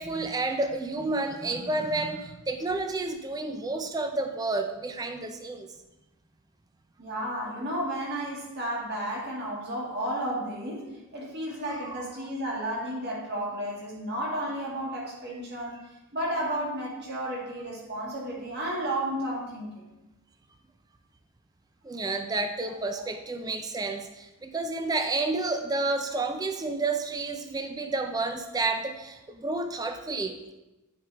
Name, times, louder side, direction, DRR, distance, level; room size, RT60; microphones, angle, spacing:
voice 1, 0.0-5.7 11.8-11.9 21.8-30.5, right 3 dB, 15° right, 6 dB, 0.4 m, -30 dB
voice 2, 7.0-15.8 16.1-19.9 23.0-23.1, right 1 dB, 45° right, -4 dB, 1.9 m, -32 dB
8.7 x 4.8 x 3.4 m, 1.0 s
head